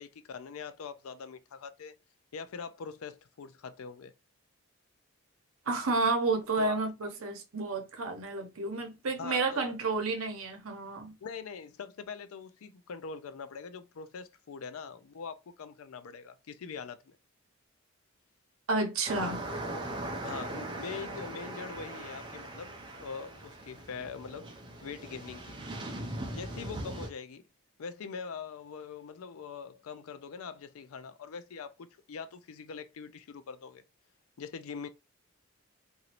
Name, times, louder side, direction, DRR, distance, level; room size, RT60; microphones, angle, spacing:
voice 1, 0.0-2.0 2.3-4.1 6.6-6.8 9.2-9.7 11.2-17.2 20.2-24.5 24.8-25.6 26.3-27.4 27.8-33.8 34.4-34.9, left 5 dB, 80° left, 0.4 m, -43 dB
voice 2, 5.7-11.1 18.7-19.4, right 3 dB, 80° right, 0.8 m, -31 dB
sound 1, 19.1-27.1, right 1 dB, 20° right, 0.6 m, -40 dB
3.0 x 2.6 x 2.9 m
head